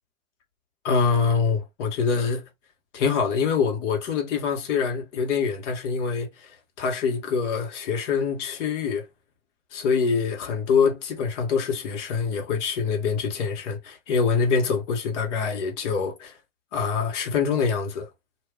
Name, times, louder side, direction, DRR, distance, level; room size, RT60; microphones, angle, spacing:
voice 1, 0.8-2.4 2.9-9.0 9.7-16.3 16.7-18.1, left 5 dB, 60° left, 1.2 m, -25 dB
2.5 x 2.3 x 3.4 m
hypercardioid pair, 110°, 40 cm